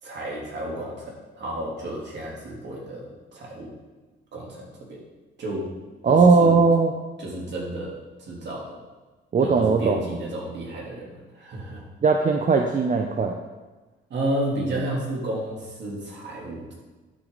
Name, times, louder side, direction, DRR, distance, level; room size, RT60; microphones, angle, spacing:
voice 1, 0.0-3.7 4.3-4.6 4.9-5.0 5.4-5.7 6.0-6.5 7.2-8.8 9.4-11.8 14.1-16.8, right 1 dB, 60° right, -3 dB, 3.5 m, -32 dB
voice 2, 6.0-6.9 9.3-10.0 12.0-13.4, right 4 dB, 40° right, 3 dB, 0.8 m, -18 dB
11.5 x 6.9 x 4.1 m, 1.2 s
cardioid pair, 90°, 20 cm